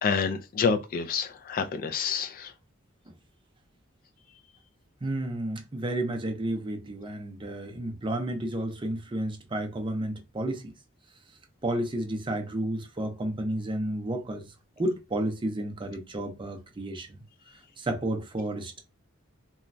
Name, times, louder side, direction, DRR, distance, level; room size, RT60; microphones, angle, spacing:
voice 1, 0.0-2.5, left 5 dB, 45° left, 0.3 m, -28 dB
voice 2, 5.0-10.7 11.6-14.5 14.8-17.2 17.8-18.8, right 1 dB, 25° right, 0.5 m, -31 dB
3.0 x 2.2 x 2.5 m
head